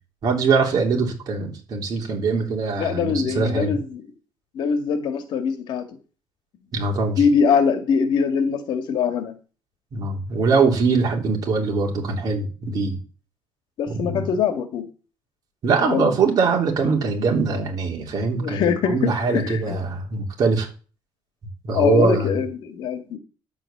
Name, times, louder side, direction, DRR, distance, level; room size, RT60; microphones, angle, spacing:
voice 1, 0.2-3.8 6.7-7.2 9.9-13.0 13.9-14.3 15.6-20.7 21.6-22.3, right 4 dB, 45° right, 2 dB, 3.3 m, -22 dB
voice 2, 2.8-4.0 4.5-6.0 7.2-9.3 13.8-14.9 15.8-16.1 18.4-19.6 21.7-23.2, left 6 dB, 60° left, 8 dB, 2.0 m, -22 dB
10.0 x 7.6 x 7.4 m, 0.37 s
cardioid pair, 150°, 9 cm